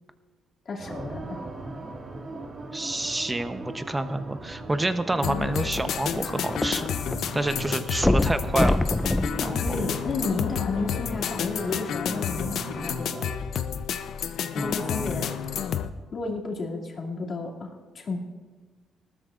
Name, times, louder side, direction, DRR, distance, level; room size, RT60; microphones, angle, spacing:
voice 1, 0.7-1.4 9.4-13.2 14.5-15.3 16.1-18.2, left 3 dB, 50° left, -3 dB, 2.5 m, -32 dB
sound 1, 0.8-13.4, right 2 dB, 40° right, 1.9 m, -39 dB
voice 2, 2.7-6.9 7.3-8.8 9.3-9.6 14.6-15.2, right 2 dB, 15° right, 10 dB, 0.8 m, -28 dB
sound 2, 5.2-15.9, left 8 dB, 70° left, 0.5 m, -30 dB
sound 3, 5.7-7.2 7.5-7.6 8.0-10.5 11.2-11.3, left 1 dB, 10° left, 0.3 m, -26 dB
19.0 x 13.0 x 2.5 m, 1.4 s
cardioid pair, 90°, 0 cm